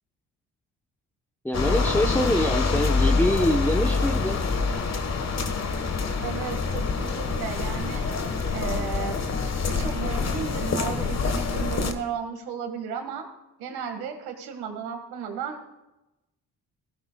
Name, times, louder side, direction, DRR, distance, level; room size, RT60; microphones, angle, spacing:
voice 1, 1.4-4.4, left 1 dB, 5° left, 4 dB, 0.8 m, -24 dB
sound 1, 1.5-11.9, left 4 dB, 45° left, 1.4 m, -26 dB
voice 2, 6.2-9.2 9.7-13.3 13.6-15.7, right 7 dB, 85° right, 6 dB, 1.8 m, -34 dB
15.5 x 15.0 x 2.3 m, 0.96 s
supercardioid pair, 70°, 37 cm